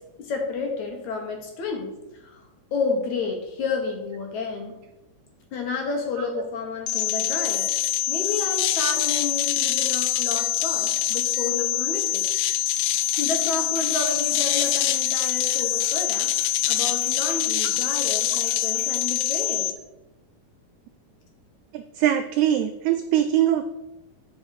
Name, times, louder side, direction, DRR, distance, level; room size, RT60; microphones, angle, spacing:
voice 1, 0.2-1.9 2.2-2.4 2.7-4.8 5.5-7.7 8.1-12.2 13.2-16.3 16.7-19.7, left 4 dB, 65° left, 2 dB, 2.4 m, -30 dB
sound 1, 6.9-19.7, left 13 dB, 85° left, 2.3 m, -24 dB
sound 2, 13.1-18.8, left 2 dB, 35° left, 1.7 m, -47 dB
voice 2, 21.7-23.6, right 11 dB, 85° right, 8 dB, 1.7 m, -22 dB
9.3 x 5.5 x 4.7 m, 0.95 s
omnidirectional pair, 3.8 m